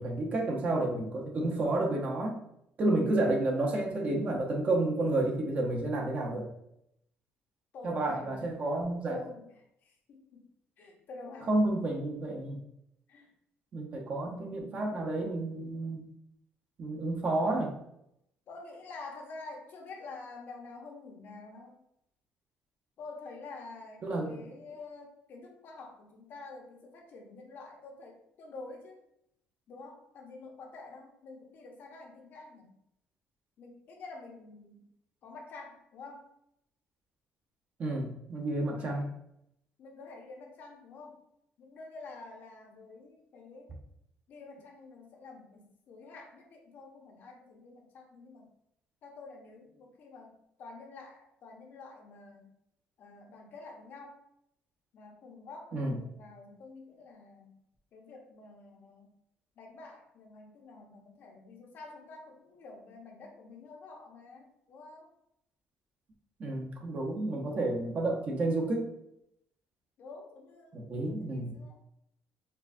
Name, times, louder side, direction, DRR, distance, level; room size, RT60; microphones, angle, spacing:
voice 1, 0.0-2.4 2.8-6.5 7.8-9.2 11.5-12.6 13.7-16.1 16.8-17.7 24.0-24.4 37.8-39.1 55.7-56.0 66.4-68.9 70.7-71.5, right 2 dB, 35° right, 0 dB, 0.8 m, -30 dB
voice 2, 7.7-8.5 9.1-10.5 10.8-11.6 13.1-13.3 18.5-21.8 23.0-29.0 29.7-32.7 33.6-34.8 35.2-36.3 38.7-39.1 39.8-41.2 41.6-43.7 44.3-48.5 49.0-52.5 53.0-54.2 54.9-57.5 57.9-59.1 59.6-65.1 70.0-71.8, left 3 dB, 50° left, 1 dB, 0.8 m, -48 dB
4.4 x 2.3 x 2.6 m, 0.77 s
cardioid pair, 135°, 4 cm